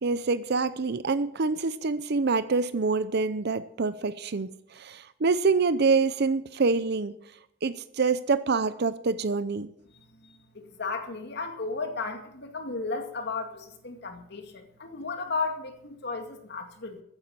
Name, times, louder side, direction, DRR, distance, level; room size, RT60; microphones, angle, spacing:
voice 1, 0.0-7.1 7.6-9.7, right 4 dB, 55° right, 14 dB, 0.6 m, -26 dB
voice 2, 10.2-17.0, left 4 dB, 55° left, 5 dB, 2.2 m, -34 dB
15.0 x 9.8 x 7.5 m, 0.74 s
head